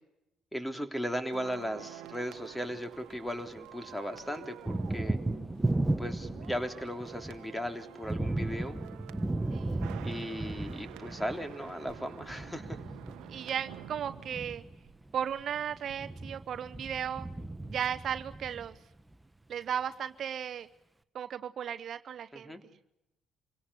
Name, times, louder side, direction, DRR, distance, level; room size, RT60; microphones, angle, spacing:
voice 1, 0.5-5.2 6.0-8.8 10.0-12.8 22.3-22.6, equal, 5° left, 7 dB, 3.3 m, -37 dB
sound 1, 1.3-15.5 15.7-15.9, right 14 dB, 80° right, 1.1 m, -50 dB
Thunder, 2.4-3.6 3.9-19.1, right 2 dB, 15° right, 1.3 m, -36 dB
voice 2, 9.5-9.8 13.3-14.6 15.1-17.3 17.7-18.8 19.5-20.7 21.1-22.5, right 9 dB, 60° right, 11 dB, 0.9 m, -35 dB
26.0 x 17.5 x 9.9 m, 0.87 s
supercardioid pair, 70°, 0 cm